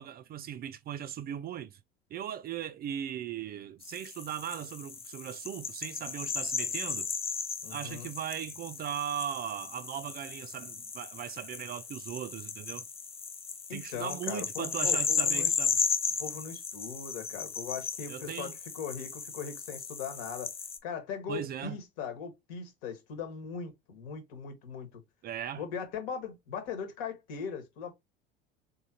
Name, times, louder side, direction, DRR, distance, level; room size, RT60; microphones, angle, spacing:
voice 1, 0.0-1.8 2.1-7.1 7.7-12.8 13.7-15.8 18.1-18.5 21.3-21.8 25.2-25.6, right 10 dB, 35° right, 0.4 m, -38 dB
sound 1, 3.8-20.8, left 5 dB, 20° left, 0.6 m, -35 dB
voice 2, 7.6-8.1 13.7-15.5 16.2-20.5 20.8-25.0 25.5-27.9, left 6 dB, 65° left, 1.4 m, -39 dB
3.7 x 2.7 x 2.8 m
hypercardioid pair, 75°, 29 cm